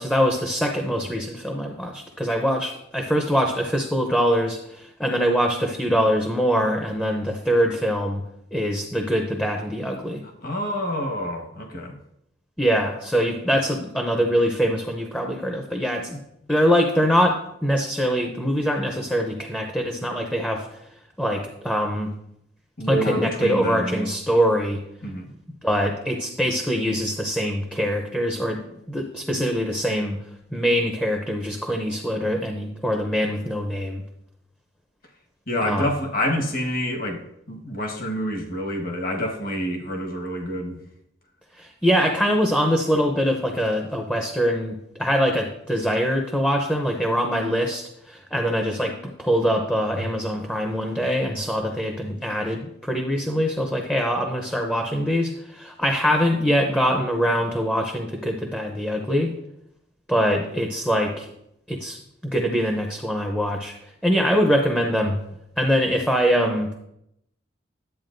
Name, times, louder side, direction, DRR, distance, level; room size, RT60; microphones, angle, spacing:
voice 1, 0.0-8.2 8.5-10.2 12.6-16.2 16.5-20.7 21.2-22.1 22.9-24.8 25.6-30.2 30.5-34.0 35.6-35.9 41.5-59.3 60.1-61.3 61.7-63.7 64.0-65.2 65.6-66.8, equal, 5° left, 2 dB, 0.6 m, -23 dB
voice 2, 10.4-12.0 22.8-24.1 25.0-25.3 35.5-37.2 37.5-40.8, equal, 50° left, 2 dB, 1.3 m, -27 dB
11.0 x 8.2 x 2.6 m, 0.80 s
head